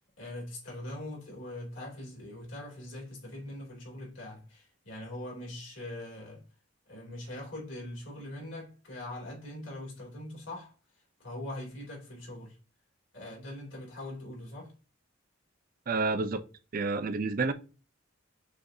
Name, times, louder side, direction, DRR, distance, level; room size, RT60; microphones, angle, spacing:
voice 1, 0.2-6.4 6.9-10.7 11.2-12.6 13.1-14.7, left 1 dB, 70° left, 2.5 m, -42 dB
voice 2, 15.9-16.4 16.7-17.5, right 3 dB, 45° right, 0.4 m, -29 dB
6.3 x 2.5 x 2.7 m
head